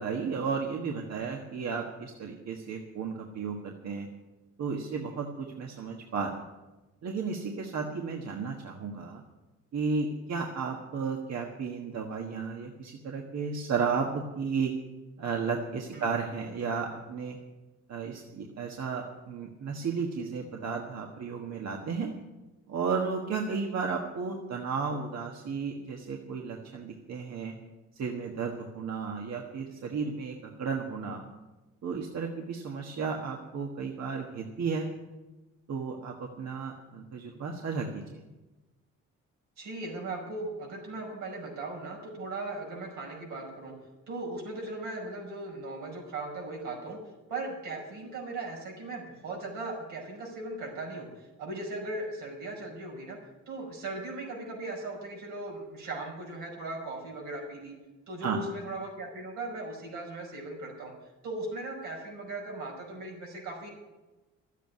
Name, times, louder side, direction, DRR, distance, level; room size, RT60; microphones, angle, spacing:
voice 1, 0.0-4.1 4.6-6.4 7.0-9.2 9.7-14.7 15.2-17.4 17.9-22.1 22.7-27.5 27.9-31.2 31.8-34.9 35.7-38.2 58.2-58.4, right 5 dB, 60° right, 1 dB, 1.5 m, -33 dB
voice 2, 39.6-43.7 44.1-47.0 47.3-53.2 53.5-57.7 58.1-60.9 61.2-63.7, right 2 dB, 85° right, -1 dB, 5.5 m, -38 dB
12.5 x 8.3 x 9.3 m, 1.1 s
cardioid pair, 90°, 30 cm